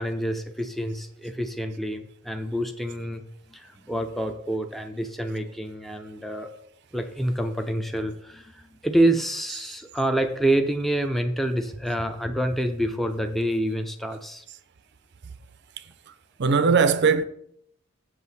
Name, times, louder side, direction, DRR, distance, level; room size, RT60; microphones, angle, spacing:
voice 1, 0.0-3.2 3.5-6.5 6.9-14.4, right 1 dB, ahead, 0.5 m, -27 dB
voice 2, 16.4-17.2, right 5 dB, 55° right, 0.5 m, -20 dB
7.6 x 7.3 x 4.1 m
head